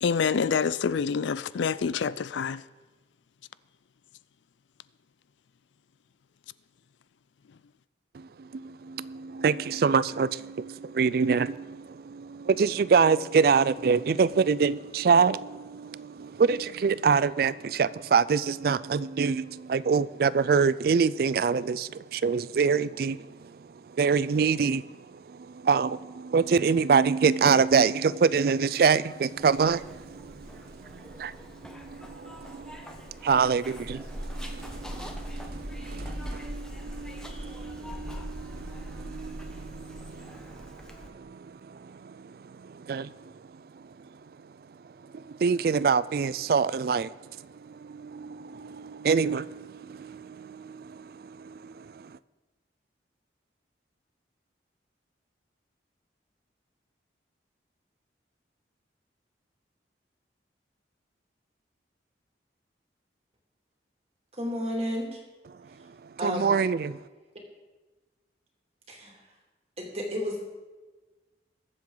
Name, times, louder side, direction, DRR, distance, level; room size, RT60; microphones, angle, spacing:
voice 1, 0.0-2.6, left 6 dB, 85° left, 0.4 m, -27 dB
voice 2, 8.1-23.5 23.9-43.3 45.1-47.1 47.4-52.2 66.2-67.0, right 5 dB, 55° right, 0.3 m, -26 dB
Zipper (clothing), 29.4-41.1, equal, 5° left, 1.0 m, -41 dB
voice 3, 64.4-65.2 66.2-66.6 68.9-69.2 69.8-70.4, equal, 35° right, 2.5 m, -32 dB
21.5 x 7.7 x 3.9 m
head